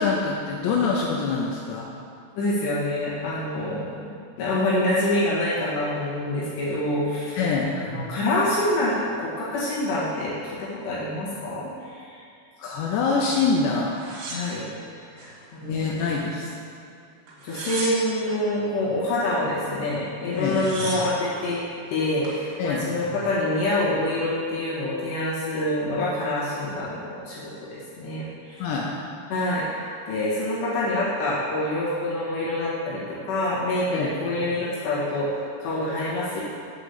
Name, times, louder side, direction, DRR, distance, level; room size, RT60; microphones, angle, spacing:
voice 1, 0.0-1.9 7.4-7.7 12.6-13.9 15.6-16.5 20.3-20.6 22.6-22.9 28.6-28.9 33.9-34.1, left 4 dB, 85° left, -2 dB, 2.4 m, -25 dB
voice 2, 2.4-7.4 7.7-12.2 14.3-14.7 15.1-15.8 17.4-21.6 21.9-28.7 29.3-36.4, left 1 dB, 65° left, -8 dB, 3.4 m, -26 dB
sound 1, 14.0-15.3 15.8-16.5 17.3-18.4 19.9-20.0 20.2-21.2 21.9-22.4, right 2 dB, 75° right, 4.1 m, -36 dB
8.3 x 4.9 x 6.7 m, 2.4 s
omnidirectional pair, 5.9 m